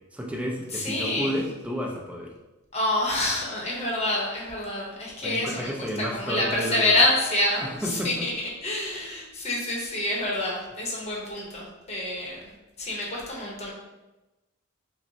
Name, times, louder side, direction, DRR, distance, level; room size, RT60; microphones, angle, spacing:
voice 1, 0.1-2.3 5.2-7.0 7.8-8.3, equal, 5° right, -1 dB, 0.5 m, -31 dB
voice 2, 0.7-1.3 2.7-5.7 6.1-12.5 12.8-13.7, left 2 dB, 30° left, -3 dB, 0.9 m, -27 dB
5.7 x 2.1 x 2.7 m, 1.1 s
head